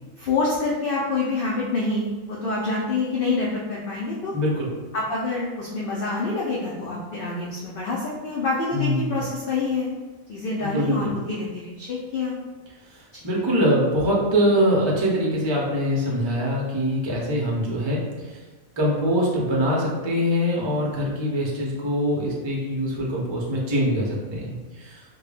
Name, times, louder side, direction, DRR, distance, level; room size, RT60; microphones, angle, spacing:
voice 1, 0.2-4.3 4.9-9.9 10.3-12.4, left 3 dB, 60° left, -4 dB, 0.6 m, -26 dB
voice 2, 4.3-4.7 8.7-9.3 10.6-11.2 13.2-18.4 18.8-25.0, equal, 30° right, -3 dB, 0.5 m, -23 dB
3.7 x 2.2 x 3.3 m, 1.2 s
omnidirectional pair, 1.4 m